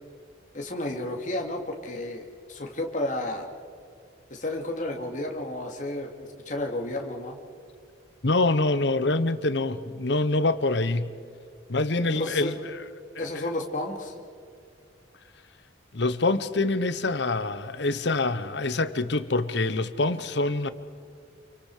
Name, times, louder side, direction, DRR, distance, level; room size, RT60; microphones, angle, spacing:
voice 1, 0.5-3.5 4.3-7.4 12.1-12.5 13.2-14.1, left 1 dB, 40° left, 2.6 m, -32 dB
voice 2, 8.2-11.1 11.7-12.5 13.3-13.4 15.9-20.7, left 2 dB, 60° left, 0.9 m, -25 dB
28.5 x 24.0 x 5.0 m
head